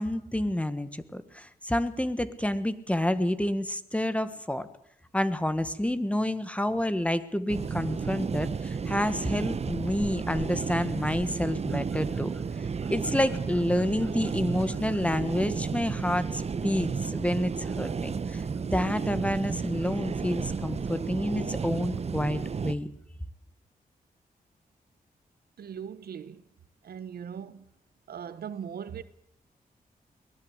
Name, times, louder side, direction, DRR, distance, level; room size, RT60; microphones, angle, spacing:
voice 1, 0.0-4.7 5.1-12.3 12.9-18.4 18.7-22.9, left 1 dB, 10° left, 1.6 m, -29 dB
sound 1, 7.5-22.7, right 5 dB, 45° right, 1.0 m, -32 dB
voice 2, 25.6-26.4 26.8-27.7 28.1-29.0, right 8 dB, 85° right, 1.2 m, -39 dB
23.0 x 18.0 x 8.2 m
wide cardioid pair, 100°, 15 cm